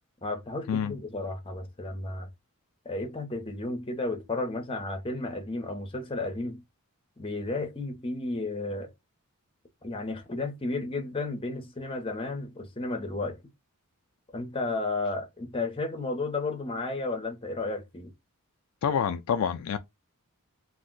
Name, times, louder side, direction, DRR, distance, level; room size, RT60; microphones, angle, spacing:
voice 1, 0.2-2.3 2.8-6.6 7.2-8.9 9.8-13.4 14.3-18.1, left 2 dB, 25° left, 0.7 m, -33 dB
voice 2, 18.8-19.8, left 7 dB, 70° left, 0.3 m, -27 dB
2.6 x 2.1 x 3.7 m
head